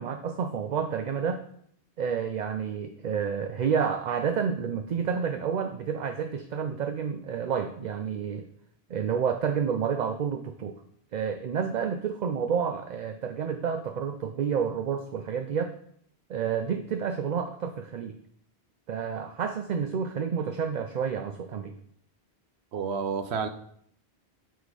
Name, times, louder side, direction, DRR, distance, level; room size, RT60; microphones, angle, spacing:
voice 1, 0.0-1.4 2.0-8.5 8.9-10.8 11.1-15.7 16.3-18.2 18.9-21.8, right 7 dB, 55° right, 7 dB, 0.5 m, -29 dB
voice 2, 22.7-23.5, right 6 dB, 75° right, 9 dB, 1.0 m, -29 dB
8.0 x 4.2 x 4.7 m, 0.65 s
omnidirectional pair, 1.1 m